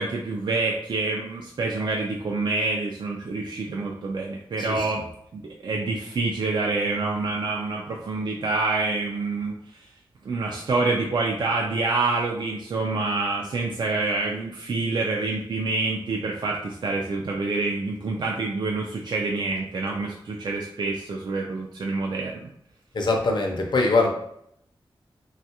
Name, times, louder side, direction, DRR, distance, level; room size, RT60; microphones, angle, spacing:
voice 1, 0.0-5.0 5.3-9.5 10.2-22.5, right 3 dB, 55° right, -1 dB, 0.4 m, -27 dB
voice 2, 22.9-24.1, left 3 dB, 55° left, 1 dB, 0.5 m, -22 dB
3.1 x 2.3 x 2.8 m, 0.74 s
wide cardioid pair, 115°, 9 cm